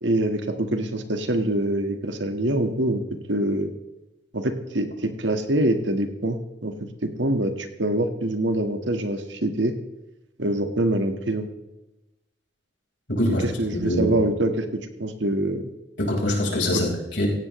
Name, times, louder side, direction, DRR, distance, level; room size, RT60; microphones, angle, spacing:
voice 1, 0.0-3.0 3.3-3.7 4.3-6.7 7.0-9.7 10.4-11.5 13.3-15.6 16.7-16.8, right 1 dB, 90° right, 6 dB, 1.7 m, -25 dB
voice 2, 13.1-13.5 13.8-14.1 16.0-17.3, left 1 dB, 85° left, -1 dB, 5.0 m, -24 dB
17.0 x 16.0 x 3.2 m, 1.0 s
head